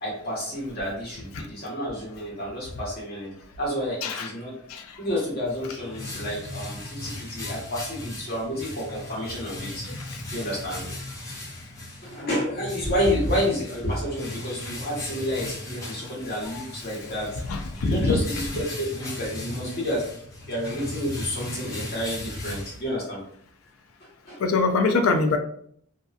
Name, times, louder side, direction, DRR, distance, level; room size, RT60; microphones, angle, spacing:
voice 1, 0.0-4.6 5.0-9.9 10.3-10.9 12.0-23.2 24.2-24.4, equal, 45° left, -5 dB, 1.2 m, -30 dB
sound 1, 5.4-23.2, left 2 dB, 15° left, 0.6 m, -37 dB
voice 2, 17.4-18.1 24.4-25.4, left 3 dB, 75° left, 6 dB, 0.4 m, -23 dB
2.6 x 2.3 x 2.4 m, 0.64 s
head